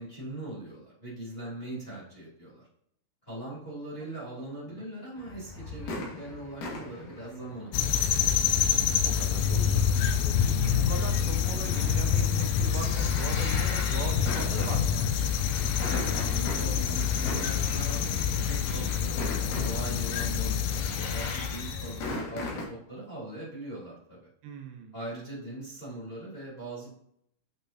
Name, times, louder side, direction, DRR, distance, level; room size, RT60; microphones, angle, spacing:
voice 1, 0.0-2.7 3.2-7.8 15.8-24.2 24.9-26.9, right 1 dB, 15° left, -7 dB, 2.6 m, -40 dB
voice 2, 4.4-4.9 9.0-9.9 10.4-15.1 24.4-24.9, right 5 dB, 80° right, 4 dB, 3.0 m, -40 dB
sound 1, 5.2-22.7, left 2 dB, 60° left, 2.9 m, -39 dB
sound 2, 7.7-22.1, left 8 dB, 85° left, 2.1 m, -27 dB
8.9 x 6.0 x 2.7 m, 0.72 s
omnidirectional pair, 5.0 m